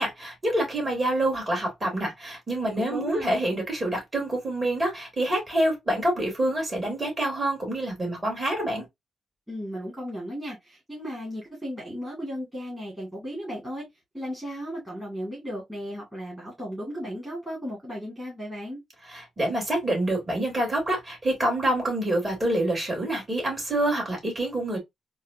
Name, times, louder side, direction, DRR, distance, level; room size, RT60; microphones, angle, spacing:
voice 1, 0.0-8.8 19.1-24.8, right 1 dB, 25° right, 2.7 m, -27 dB
voice 2, 2.8-3.4 9.5-13.9 14.1-18.8, equal, 10° right, 2.0 m, -35 dB
4.0 x 2.4 x 2.7 m
cardioid pair, 100°, 0 cm